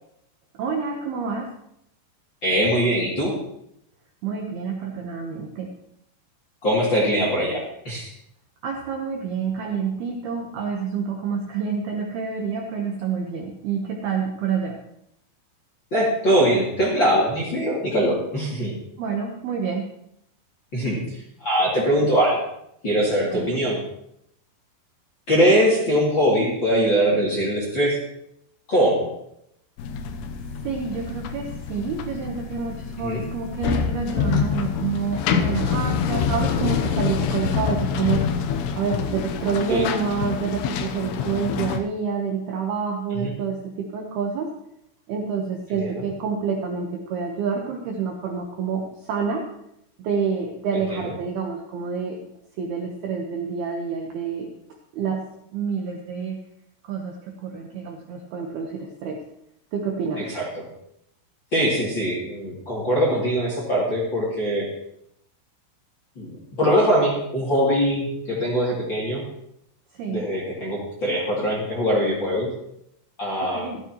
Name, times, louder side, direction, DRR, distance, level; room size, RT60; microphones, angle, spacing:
voice 1, 0.6-1.5 4.2-5.8 8.6-14.8 19.0-19.9 23.3-23.6 30.6-38.3 38.8-44.5 45.1-49.5 50.0-52.2 52.6-54.5 54.9-55.3 55.5-56.4 56.8-59.2 59.7-60.3 69.9-70.3 73.4-73.8, right 5 dB, 75° right, 1 dB, 2.4 m, -28 dB
voice 2, 2.4-3.3 6.6-8.1 15.9-18.7 20.7-22.4 22.8-23.8 25.3-28.0 28.7-29.1 33.0-33.2 39.7-39.8 43.1-43.3 45.8-46.1 50.9-51.0 60.3-60.4 61.5-64.7 66.2-69.2 70.1-72.5 73.2-73.7, equal, 35° left, -5 dB, 2.3 m, -22 dB
sound 1, 29.8-41.8, left 7 dB, 80° left, 2.5 m, -26 dB
15.0 x 13.0 x 3.0 m, 0.76 s
omnidirectional pair, 5.9 m